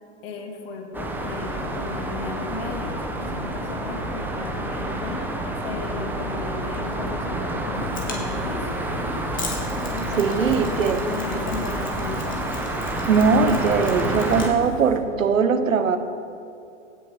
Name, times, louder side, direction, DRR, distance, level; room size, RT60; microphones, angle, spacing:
voice 1, 0.2-5.2 5.6-8.7 9.9-12.4, left 4 dB, 50° left, 3 dB, 2.1 m, -35 dB
sound 1, 0.9-14.5, right 1 dB, 5° right, 1.0 m, -28 dB
Mechanisms, 7.7-15.0, left 4 dB, 20° left, 2.3 m, -40 dB
voice 2, 10.2-11.0 13.1-16.0, right 5 dB, 90° right, 9 dB, 1.1 m, -20 dB
17.0 x 7.0 x 5.2 m, 2.6 s
hypercardioid pair, 130°, 38 cm